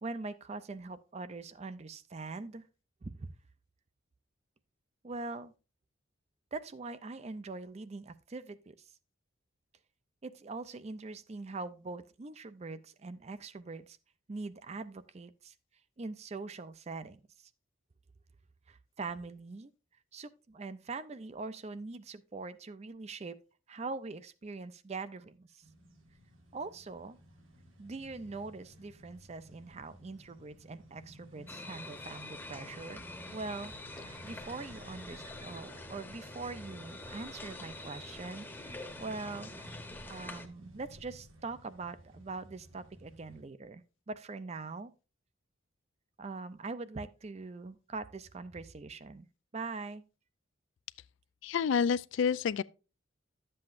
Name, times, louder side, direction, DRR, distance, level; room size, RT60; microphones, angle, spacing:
voice 1, 0.0-2.6 3.0-3.3 5.0-5.5 6.5-8.8 10.2-14.0 14.3-15.5 16.0-17.5 18.7-19.7 20.1-23.4 23.7-25.6 26.5-27.2 27.8-33.0 33.3-39.7 40.1-44.9 46.2-49.3 49.5-50.0, right 3 dB, 35° right, 0.5 m, -43 dB
sound 1, 25.6-43.4, equal, 85° right, 1.8 m, -54 dB
sound 2, 31.5-40.5, left 2 dB, 10° left, 0.9 m, -46 dB
voice 2, 51.4-52.6, left 6 dB, 65° left, 0.3 m, -28 dB
11.5 x 7.7 x 2.5 m
head